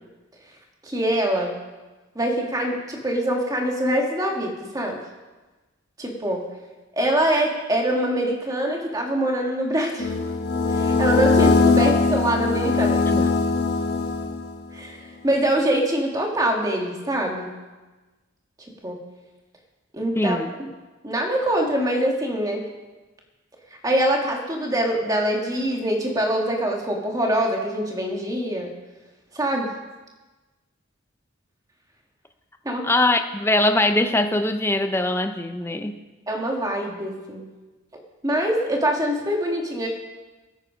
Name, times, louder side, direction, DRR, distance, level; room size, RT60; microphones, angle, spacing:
voice 1, 0.8-1.5 2.2-5.0 6.0-6.5 6.9-10.1 10.7-13.3 14.7-17.5 18.8-19.0 19.9-20.7 21.0-22.6 23.8-28.7 29.3-29.7 32.6-32.9 36.3-37.5 38.2-39.9, right 1 dB, 20° right, 0 dB, 2.0 m, -24 dB
sound 1, 10.0-14.6, left 4 dB, 50° left, 1.3 m, -21 dB
voice 2, 20.2-20.5 32.8-35.9, left 1 dB, 10° left, 7 dB, 0.7 m, -22 dB
19.0 x 8.4 x 5.1 m, 1.2 s
head